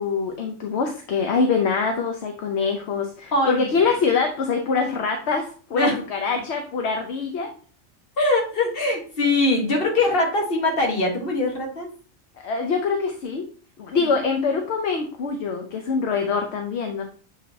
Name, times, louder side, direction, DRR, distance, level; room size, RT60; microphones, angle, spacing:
voice 1, 0.0-7.5 12.4-13.5 13.8-17.0, left 5 dB, 70° left, 4 dB, 1.0 m, -24 dB
voice 2, 3.3-3.6 5.7-6.0 8.2-11.9 13.9-14.1, left 2 dB, 55° left, 1 dB, 1.5 m, -22 dB
7.5 x 4.9 x 2.7 m, 0.42 s
omnidirectional pair, 1.2 m